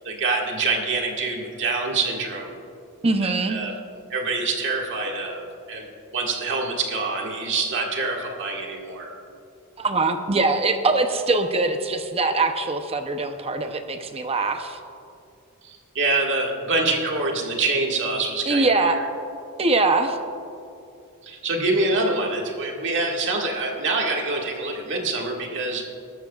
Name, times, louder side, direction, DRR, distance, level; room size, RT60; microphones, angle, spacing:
voice 1, 0.0-2.6 3.2-3.7 4.1-5.9 6.1-9.1 15.6-19.0 21.2-25.8, right 3 dB, 55° right, -1 dB, 1.9 m, -25 dB
voice 2, 3.0-3.6 9.8-14.8 18.5-19.0 19.6-20.2, right 3 dB, 25° right, 6 dB, 0.7 m, -22 dB
21.5 x 12.5 x 2.4 m, 2.6 s
head